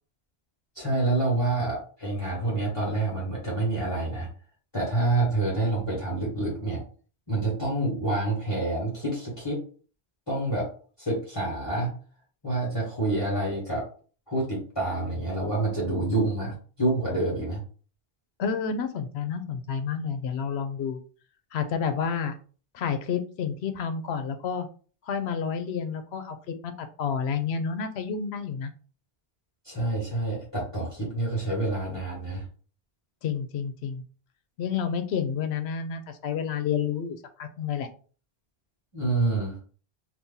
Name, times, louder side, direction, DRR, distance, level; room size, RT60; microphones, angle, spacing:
voice 1, 0.7-4.3 4.7-6.8 7.3-9.6 10.3-10.7 11.0-12.0 12.4-13.8 14.3-17.6 29.6-32.4 38.9-39.6, right 2 dB, 25° left, -5 dB, 1.1 m, -27 dB
voice 2, 18.4-21.0 21.5-22.3 22.7-24.7 25.1-28.7 33.2-34.0 34.6-37.9, left 6 dB, 85° left, 9 dB, 0.8 m, -30 dB
2.7 x 2.6 x 3.7 m, 0.40 s
omnidirectional pair, 1.1 m